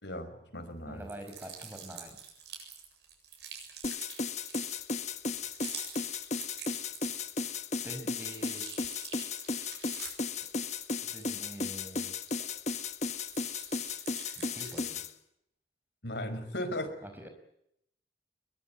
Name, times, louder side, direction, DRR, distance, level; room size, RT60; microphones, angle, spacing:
voice 1, 0.0-1.0 16.0-16.9, left 1 dB, 90° left, 7 dB, 5.5 m, -37 dB
voice 2, 0.9-2.2 7.4-7.6 7.8-8.7 9.2-9.3 11.0-12.2 14.3-15.0 17.0-17.3, right 1 dB, 10° right, 6 dB, 5.2 m, -45 dB
sound 1, 1.0-7.5 7.8-12.7 13.1-15.0, right 7 dB, 75° right, 7.9 m, -47 dB
sound 2, 3.8-15.1, left 4 dB, 40° left, 1.3 m, -35 dB
23.0 x 22.5 x 9.6 m, 0.78 s
head